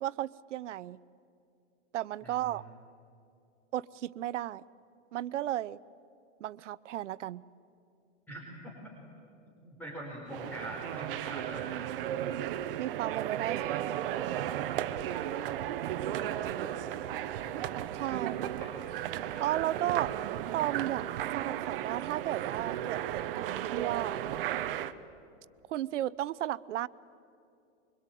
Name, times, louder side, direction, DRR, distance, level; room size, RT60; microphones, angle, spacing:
voice 1, 0.0-1.0 1.9-2.6 3.7-4.6 5.1-5.8 6.4-7.4 12.8-14.1 17.9-18.5 19.4-20.1 20.5-21.0 21.3-24.2 25.7-26.9, right 13 dB, 75° right, 20 dB, 0.8 m, -34 dB
voice 2, 2.2-2.6 8.3-8.7 9.6-12.1 16.1-16.9 18.1-18.3 18.6-18.7 19.3-19.5, right 1 dB, 5° left, -4 dB, 4.6 m, -45 dB
sound 1, 10.3-24.9, right 11 dB, 50° right, 1.0 m, -35 dB
25.0 x 23.5 x 9.2 m, 2.6 s
supercardioid pair, 160°, 36 cm